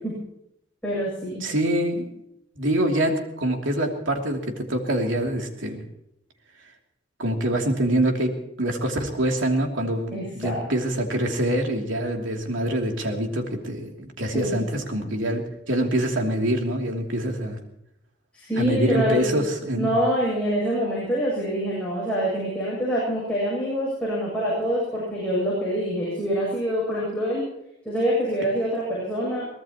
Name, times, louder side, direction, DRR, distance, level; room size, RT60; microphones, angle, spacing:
voice 1, 0.8-1.4 10.1-10.7 14.3-14.7 14.9-15.1 18.3-19.3 19.8-27.5 27.8-29.5, equal, 5° left, -7 dB, 7.7 m, -25 dB
voice 2, 1.4-2.1 2.6-5.8 7.2-17.6 18.6-20.0, right 1 dB, 85° right, 2 dB, 2.9 m, -25 dB
23.5 x 19.0 x 3.0 m, 0.79 s
head